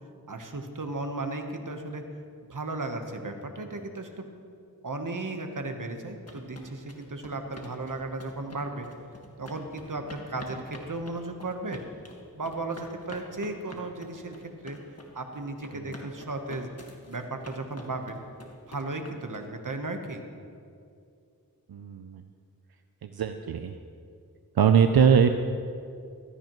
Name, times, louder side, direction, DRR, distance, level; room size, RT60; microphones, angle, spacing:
voice 1, 0.3-2.0 2.5-4.3 4.8-8.9 9.4-11.8 12.3-14.8 15.1-16.7 17.1-18.2 18.7-20.2, right 2 dB, 60° right, 5 dB, 1.1 m, -35 dB
sound 1, 6.0-19.7, left 1 dB, 40° left, 1.6 m, -47 dB
voice 2, 21.7-22.2 23.0-23.7 24.6-25.3, right 7 dB, 85° right, 7 dB, 0.5 m, -21 dB
15.0 x 13.0 x 3.0 m, 2.5 s
wide cardioid pair, 55°, 36 cm